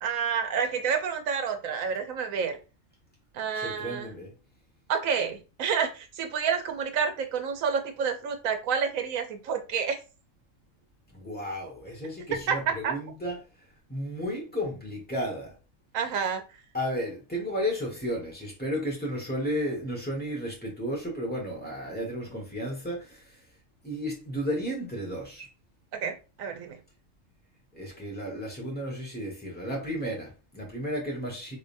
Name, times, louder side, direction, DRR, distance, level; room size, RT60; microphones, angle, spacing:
voice 1, 0.0-2.6 3.3-4.1 4.9-10.0 12.5-12.6 12.8-12.9 15.9-16.4 26.0-26.8, right 6 dB, 85° right, 1.1 m, -29 dB
voice 2, 3.5-4.3 11.1-13.4 13.9-15.5 16.7-23.4 23.8-25.5 27.7-31.6, equal, 5° left, 1.4 m, -33 dB
3.7 x 3.3 x 2.6 m
omnidirectional pair, 1.4 m